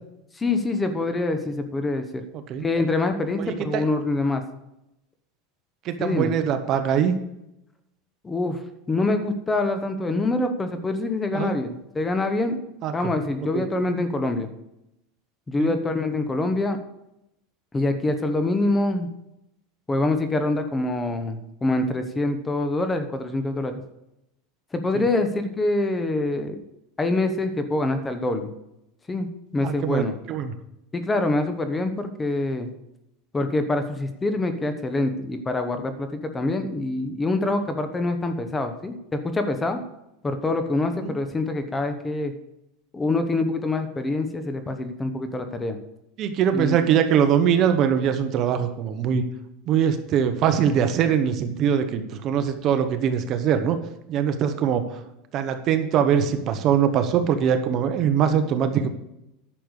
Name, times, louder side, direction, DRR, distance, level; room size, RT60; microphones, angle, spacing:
voice 1, 0.3-2.2 2.6-4.4 6.0-6.3 8.2-12.6 12.9-14.5 15.5-16.8 17.7-19.1 19.9-23.8 24.7-26.6 27.0-28.5 29.1-29.3 29.5-30.1 30.9-32.7 33.3-39.8 40.2-42.3 42.9-45.8 46.5-46.8, left 2 dB, 15° left, 8 dB, 1.0 m, -25 dB
voice 2, 2.3-2.7 3.4-3.8 5.8-7.2 11.3-11.5 12.8-12.9 13.5-13.6 15.6-15.7 24.9-25.0 29.6-30.0 30.3-30.5 41.0-41.1 46.2-49.2 49.7-53.8 54.1-55.0 55.3-58.9, right 8 dB, 40° right, 8 dB, 1.1 m, -22 dB
10.5 x 6.7 x 6.5 m, 0.85 s
supercardioid pair, 145°, 0 cm